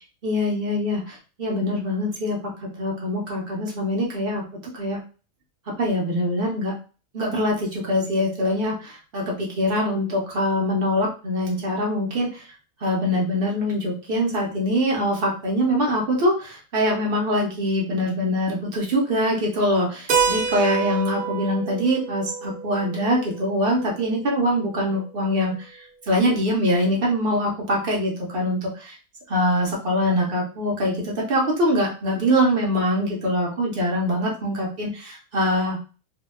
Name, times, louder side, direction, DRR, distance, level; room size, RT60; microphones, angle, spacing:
voice 1, 0.2-4.4 4.7-5.0 5.7-6.7 7.1-12.4 12.8-28.9 29.3-35.8, equal, 50° right, -2 dB, 0.9 m, -23 dB
Keyboard (musical), 20.1-24.6, right 6 dB, 70° right, 0.5 m, -28 dB
2.7 x 2.3 x 2.2 m, 0.35 s
omnidirectional pair, 1.4 m